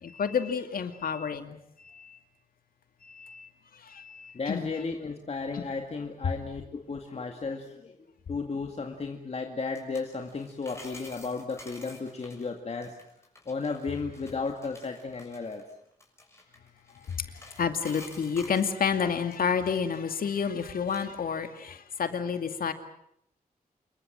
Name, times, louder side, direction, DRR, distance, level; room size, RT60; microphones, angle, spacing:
voice 1, 0.0-1.6 1.8-2.2 3.0-3.5 3.8-4.7 5.5-5.6 17.5-22.7, left 6 dB, 85° left, 8 dB, 2.4 m, -30 dB
voice 2, 4.3-8.0 8.3-13.0 13.5-15.6, left 4 dB, 45° left, 3 dB, 2.2 m, -34 dB
sound 1, 9.6-18.8 19.3-21.1 21.4-21.6, left 2 dB, 20° left, 6.7 m, -51 dB
27.5 x 23.0 x 7.5 m, 0.75 s
wide cardioid pair, 120°, 15 cm